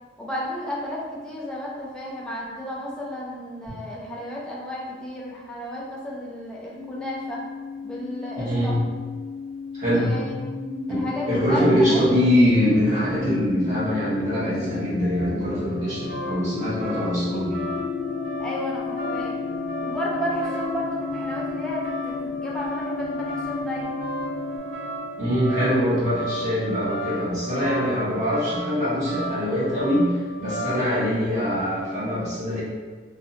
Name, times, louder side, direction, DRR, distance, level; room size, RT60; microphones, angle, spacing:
voice 1, 0.2-7.4 7.8-8.7 9.9-10.3 10.9-12.0 18.4-19.4 19.8-23.9, equal, 5° left, -4 dB, 0.4 m, -32 dB
sound 1, 6.7-24.6, left 5 dB, 15° right, 1.4 m, -35 dB
voice 2, 8.4-8.8 9.7-10.2 10.9-17.6 25.2-32.6, equal, 45° right, -10 dB, 1.1 m, -23 dB
sound 2, 10.1-29.6, left 2 dB, 70° left, 0.4 m, -36 dB
sound 3, 15.6-31.0, equal, 80° right, 0.6 m, -35 dB
2.6 x 2.1 x 2.6 m, 1.4 s
head